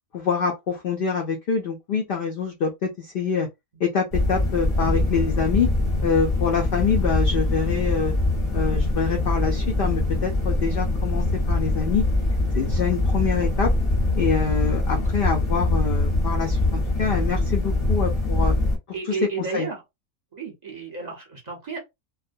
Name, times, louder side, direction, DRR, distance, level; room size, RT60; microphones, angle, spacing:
voice 1, 0.1-3.5 3.8-5.7 6.0-8.1 8.5-12.1 12.5-13.7 14.2-18.6 19.5-19.7, left 6 dB, 80° left, 0.5 m, -25 dB
sound 1, 4.1-18.8, left 2 dB, 25° left, 0.7 m, -23 dB
voice 2, 18.9-19.8 20.3-21.8, right 5 dB, 35° right, 0.8 m, -32 dB
2.3 x 2.1 x 2.6 m
omnidirectional pair, 1.5 m